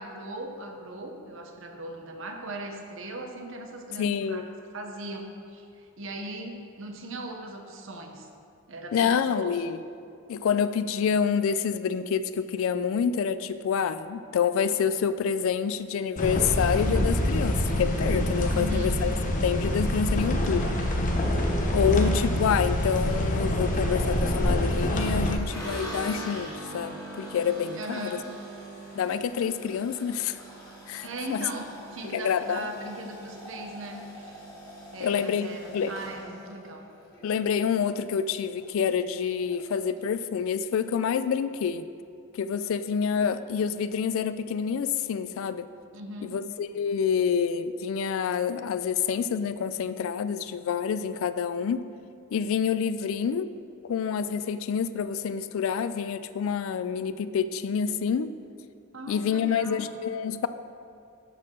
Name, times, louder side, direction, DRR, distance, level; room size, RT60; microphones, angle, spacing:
voice 1, 0.0-4.4 4.7-8.3 8.7-9.6 18.5-19.0 27.8-28.3 31.0-34.4 34.9-36.8 45.9-46.4 58.9-59.9, right 1 dB, 60° right, 4 dB, 0.8 m, -39 dB
voice 2, 4.0-4.5 8.9-9.8 10.3-19.1 19.4-20.7 21.7-28.2 28.9-30.4 30.9-31.5 32.1-32.7 35.0-35.9 37.2-41.9 42.3-45.7 46.2-51.9 52.3-53.5 53.8-58.3 59.1-60.5, left 7 dB, 70° left, 13 dB, 0.3 m, -27 dB
sound 1, 16.2-25.3, left 1 dB, 35° left, 0.7 m, -26 dB
sound 2, 25.5-37.7 38.1-38.7 38.9-39.0 39.3-40.1, right 1 dB, 15° left, 1.8 m, -42 dB
12.5 x 4.6 x 3.7 m, 2.4 s
head